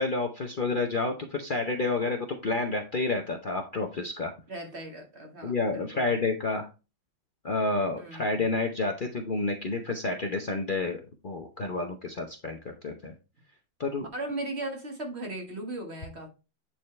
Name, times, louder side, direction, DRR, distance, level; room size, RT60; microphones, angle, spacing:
voice 1, 0.0-4.3 5.4-6.7 7.4-13.1 13.8-14.1, left 3 dB, 85° left, 0.4 m, -29 dB
voice 2, 4.5-6.1 8.0-8.4 14.1-16.3, right 1 dB, 35° right, 1.7 m, -37 dB
9.1 x 4.4 x 3.2 m
omnidirectional pair, 2.1 m